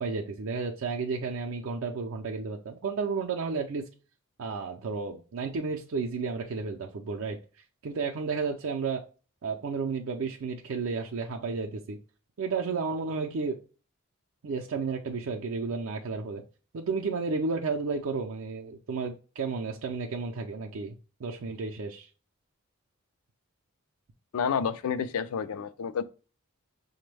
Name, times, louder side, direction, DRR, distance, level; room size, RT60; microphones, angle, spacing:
voice 1, 0.0-3.8 4.4-7.4 7.8-9.0 9.4-12.0 12.4-13.6 14.4-16.4 16.7-22.1, right 4 dB, 70° right, 0.4 m, -32 dB
voice 2, 24.3-26.0, left 7 dB, 90° left, 0.4 m, -29 dB
5.9 x 2.1 x 3.2 m
head